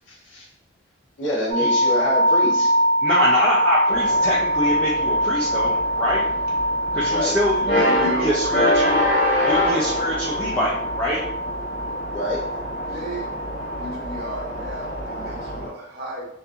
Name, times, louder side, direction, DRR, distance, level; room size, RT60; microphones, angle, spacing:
voice 1, 1.2-2.7 7.1-7.3 12.1-12.4, left 1 dB, 60° left, -2 dB, 0.7 m, -26 dB
sound 1, 1.5-15.5, equal, 85° right, 0.6 m, -24 dB
voice 2, 3.0-6.2 6.9-9.0 9.4-11.2, equal, 5° left, -7 dB, 0.3 m, -25 dB
sound 2, 3.9-15.7, left 1 dB, 45° left, 1.3 m, -26 dB
voice 3, 7.6-8.6 12.9-16.3, right 2 dB, 50° right, -4 dB, 0.8 m, -33 dB
2.7 x 2.4 x 2.4 m, 0.75 s
head